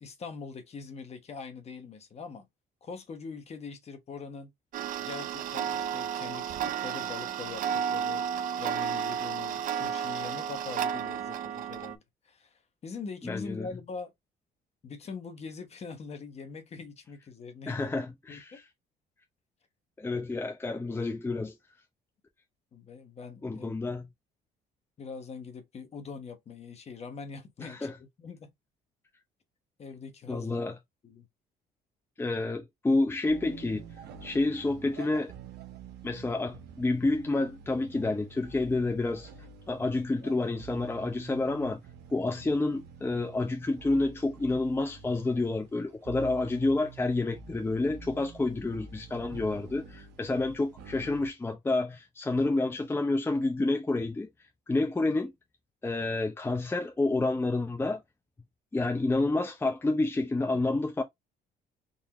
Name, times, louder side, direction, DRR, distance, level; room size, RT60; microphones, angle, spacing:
voice 1, 0.0-2.5 2.8-4.5 5.0-8.3 8.6-14.1 14.8-17.9 18.3-18.6 22.7-23.7 25.0-28.5 29.8-30.6 31.0-31.3, left 5 dB, 40° left, 1.1 m, -43 dB
Tick-tock, 4.7-11.9, right 8 dB, 55° right, 0.5 m, -32 dB
voice 2, 13.2-13.7 17.7-18.6 20.0-21.5 23.4-24.1 27.6-27.9 30.3-30.7 32.2-33.8 34.2-35.3 36.0-39.3 39.7-41.8 42.1-54.3 54.7-55.3 55.8-58.0 58.7-61.0, left 2 dB, 15° left, 0.7 m, -29 dB
sound 1, 33.3-51.3, right 5 dB, 75° right, 1.0 m, -48 dB
3.9 x 2.7 x 2.9 m
cardioid pair, 110°, 17 cm